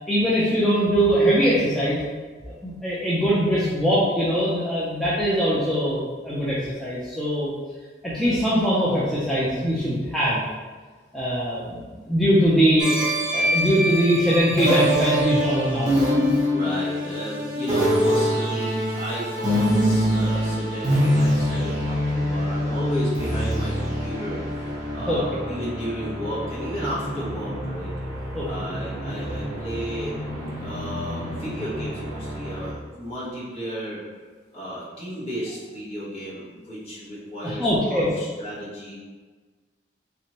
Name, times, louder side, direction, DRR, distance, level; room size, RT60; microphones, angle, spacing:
voice 1, 0.1-2.0 2.6-7.5 8.0-10.4 11.1-13.0 13.3-16.0 25.1-25.2 28.3-28.5 37.4-38.1, equal, ahead, -10 dB, 0.4 m, -22 dB
sound 1, 12.8-32.7, equal, 20° right, 0.9 m, -25 dB
voice 2, 16.4-27.9 28.4-30.1 30.6-34.0 34.5-38.9, equal, 30° left, -9 dB, 1.2 m, -33 dB
3.3 x 3.0 x 2.9 m, 1.4 s
head